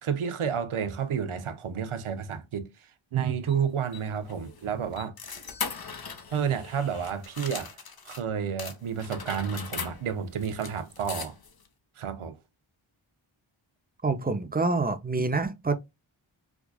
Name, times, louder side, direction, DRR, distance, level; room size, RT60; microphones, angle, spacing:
voice 1, 0.0-2.7 3.1-5.1 6.3-7.7 8.1-11.3 12.0-12.4, right 7 dB, 85° right, 0.7 m, -30 dB
sound 1, 3.5-8.2 8.6-11.7, left 5 dB, 50° left, 0.8 m, -40 dB
voice 2, 14.0-15.8, right 3 dB, 20° right, 0.6 m, -26 dB
4.7 x 2.4 x 2.3 m
wide cardioid pair, 45°, 48 cm